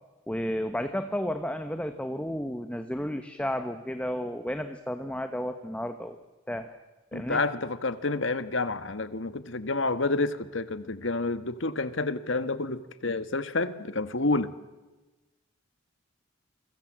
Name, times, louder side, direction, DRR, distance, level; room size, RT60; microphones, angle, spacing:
voice 1, 0.3-6.2 6.5-6.8 7.1-7.4, equal, 5° left, 8 dB, 1.2 m, -32 dB
voice 2, 7.1-14.5, left 3 dB, 70° left, 12 dB, 1.5 m, -29 dB
29.0 x 24.5 x 7.6 m, 1.2 s
head